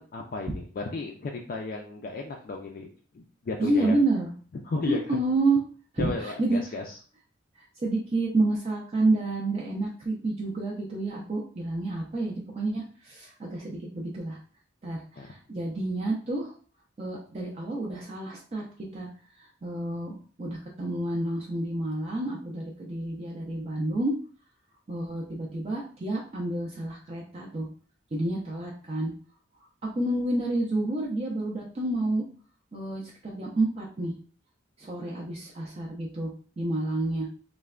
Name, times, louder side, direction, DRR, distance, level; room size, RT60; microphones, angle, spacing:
voice 1, 0.0-2.9 3.1-4.0 4.7-5.2 6.0-6.9 15.2-15.3, left 3 dB, 45° left, 1 dB, 0.3 m, -34 dB
voice 2, 3.6-4.3 4.9-5.6 5.9-6.6 7.8-14.4 14.8-16.5 17.0-18.7 18.9-19.1 19.6-24.1 24.9-27.7 28.1-29.1 29.9-32.2 32.7-34.1 34.8-36.3 36.6-37.3, right 2 dB, 30° right, -3 dB, 0.4 m, -29 dB
3.2 x 2.1 x 2.3 m, 0.41 s
head